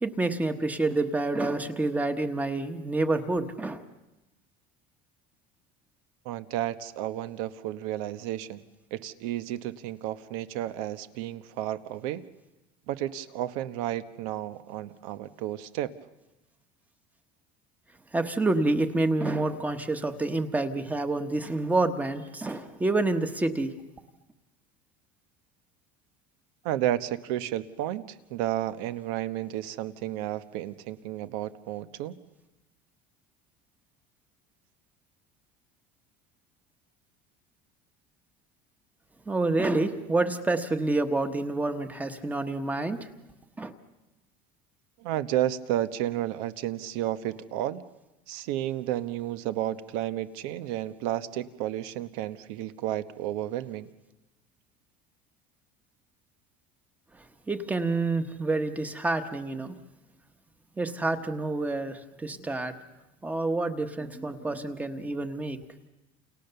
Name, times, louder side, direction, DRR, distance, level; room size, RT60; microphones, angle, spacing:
voice 1, 0.0-3.8 18.1-23.7 39.3-43.1 43.6-43.7 57.5-59.8 60.8-62.7 63.2-65.6, right 2 dB, 10° right, 8 dB, 1.1 m, -28 dB
voice 2, 6.2-8.6 8.9-12.2 12.9-15.9 26.6-32.2 45.0-47.8 48.3-53.9, right 13 dB, 85° right, 12 dB, 1.3 m, -32 dB
29.5 x 29.0 x 6.9 m, 1.0 s
cardioid pair, 180°, 17 cm